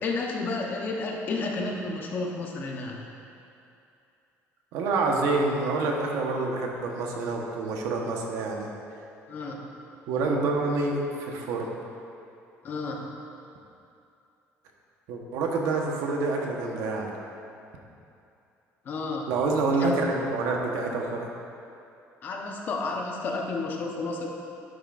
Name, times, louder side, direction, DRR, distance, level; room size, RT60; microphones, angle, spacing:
voice 1, 0.0-3.0 9.3-9.7 12.6-13.1 18.8-19.3 19.8-19.9 22.2-24.3, left 3 dB, 35° left, 0 dB, 0.9 m, -31 dB
voice 2, 4.7-8.7 10.1-11.7 15.1-17.1 19.3-21.3, right 3 dB, 90° right, 0 dB, 1.2 m, -27 dB
11.0 x 8.8 x 2.6 m, 2.7 s
cardioid pair, 175°, 5 cm